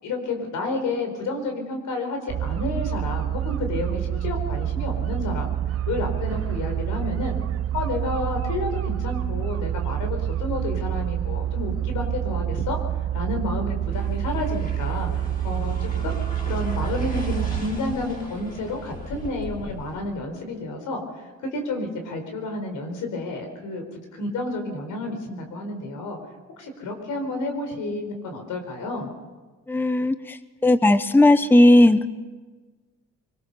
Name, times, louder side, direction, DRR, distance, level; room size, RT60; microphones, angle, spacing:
voice 1, 0.0-5.5 5.9-7.4 7.7-12.8 13.1-16.2 16.5-26.2 26.6-29.1, left 2 dB, 80° left, 4 dB, 4.8 m, -30 dB
sound 1, 2.3-17.6, right 11 dB, 50° right, 0.8 m, -27 dB
sound 2, 13.9-20.2, left 2 dB, 30° left, 5.5 m, -38 dB
voice 2, 29.7-30.4 30.6-32.1, left 1 dB, 5° left, 12 dB, 0.9 m, -16 dB
24.5 x 18.5 x 6.8 m, 1.3 s
cardioid pair, 90°, 30 cm